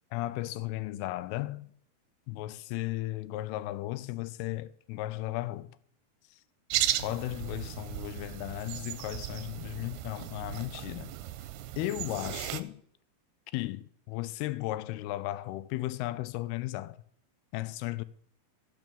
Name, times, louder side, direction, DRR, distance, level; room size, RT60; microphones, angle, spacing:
voice 1, 0.1-1.7 2.3-5.7 7.0-11.1 11.8-12.8 13.5-17.0 17.5-18.0, left 17 dB, 85° left, 2.6 m, -35 dB
sound 1, 6.7-12.6, right 14 dB, 85° right, 2.6 m, -36 dB
12.5 x 6.2 x 7.0 m
omnidirectional pair, 4.5 m